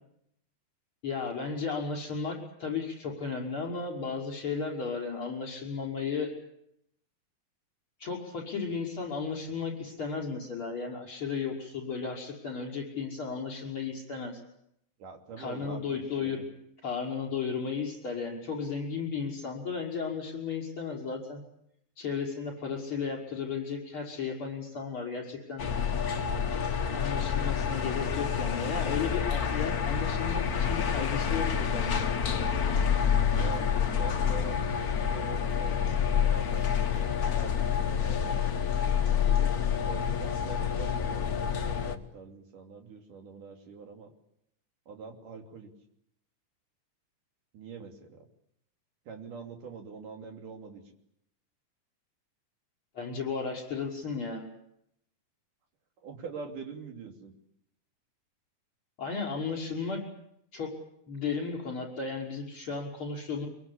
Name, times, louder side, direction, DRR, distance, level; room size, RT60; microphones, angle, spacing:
voice 1, 1.0-6.3 8.0-14.3 15.4-16.4 16.8-21.4 22.0-25.7 26.9-32.1 52.9-54.5 59.0-60.0 60.5-60.7 61.1-63.5, left 5 dB, 35° left, 0 dB, 6.4 m, -34 dB
voice 2, 15.0-16.5 29.1-29.3 33.3-38.5 39.2-44.1 44.9-45.7 47.5-48.2 49.1-50.8 56.0-57.3, right 5 dB, 65° right, 3 dB, 4.5 m, -44 dB
sound 1, 25.6-42.0, left 7 dB, 60° left, 0.9 m, -28 dB
24.0 x 23.5 x 8.6 m, 0.77 s
omnidirectional pair, 4.0 m